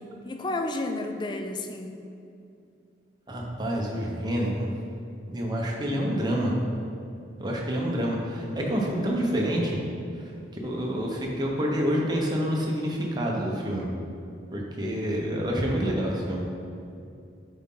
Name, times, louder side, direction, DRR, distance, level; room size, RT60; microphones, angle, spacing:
voice 1, 0.0-2.0, left 2 dB, 25° left, 5 dB, 0.4 m, -32 dB
voice 2, 3.3-4.7 5.3-6.6 7.4-9.8 10.2-13.9 14.5-16.5, equal, 25° right, -2 dB, 0.9 m, -28 dB
7.9 x 4.3 x 3.8 m, 2.6 s
head